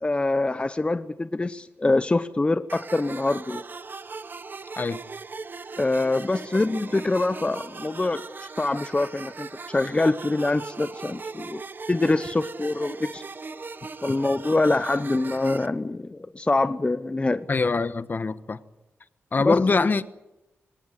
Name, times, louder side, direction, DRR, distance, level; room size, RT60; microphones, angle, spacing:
voice 1, 0.0-3.6 5.8-8.2 8.6-11.6 11.9-13.2 14.0-17.5 19.4-19.8, left 2 dB, 25° left, 0.9 m, -25 dB
sound 1, 2.7-15.7, right 4 dB, 45° right, 1.2 m, -39 dB
voice 2, 17.5-18.6 19.3-20.1, left 4 dB, 45° left, 1.2 m, -23 dB
25.0 x 18.5 x 9.3 m
wide cardioid pair, 90°, 5 cm